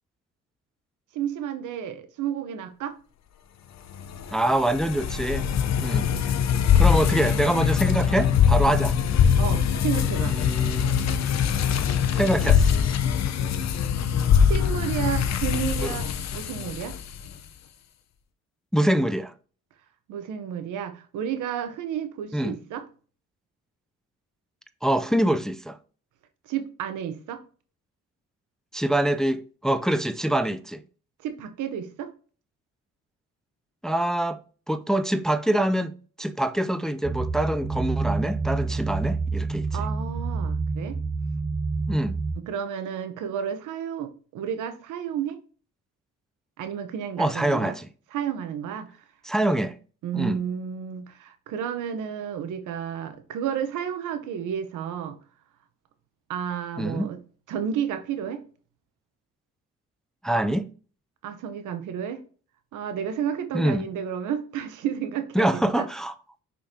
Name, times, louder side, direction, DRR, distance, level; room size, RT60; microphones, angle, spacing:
voice 1, 1.1-2.9 9.4-10.4 14.4-17.0 20.1-22.8 26.5-27.4 31.2-32.1 39.7-41.0 42.4-45.4 46.6-47.8 48.1-48.9 50.0-55.2 56.3-57.2 57.5-58.4 61.2-62.2 62.7-65.9, right 8 dB, 90° right, 1.1 m, -31 dB
sound 1, 3.9-17.3, left 7 dB, 60° left, 0.8 m, -23 dB
voice 2, 4.3-5.5 5.8-6.1 6.8-9.0 10.2-10.9 12.1-12.7 15.8-16.0 18.7-19.3 22.3-22.6 24.8-25.8 28.7-30.8 33.8-34.4 34.7-39.7 41.9-42.2 47.2-47.9 49.2-49.7 50.1-50.4 56.8-57.1 60.2-60.7 63.5-63.9 65.4-66.1, right 1 dB, ahead, 0.5 m, -25 dB
sound 2, 37.0-42.3, right 4 dB, 25° right, 1.3 m, -28 dB
6.2 x 5.7 x 2.9 m
cardioid pair, 90°, 30 cm